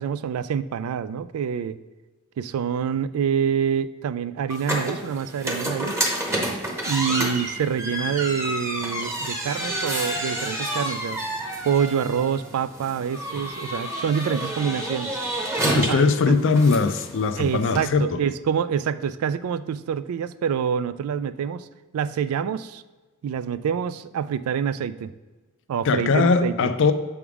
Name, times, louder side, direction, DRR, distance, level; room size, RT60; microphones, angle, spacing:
voice 1, 0.0-1.8 2.4-6.0 6.8-11.2 11.6-15.2 15.6-16.4 17.4-21.7 21.9-22.8 23.2-25.1 25.7-26.6, right 7 dB, 85° right, 14 dB, 0.3 m, -26 dB
sound 1, 4.5-17.8, right 1 dB, 15° right, 0.8 m, -29 dB
voice 2, 15.7-18.2 25.8-26.9, left 4 dB, 60° left, 10 dB, 0.4 m, -20 dB
6.9 x 3.6 x 4.7 m, 1.3 s
head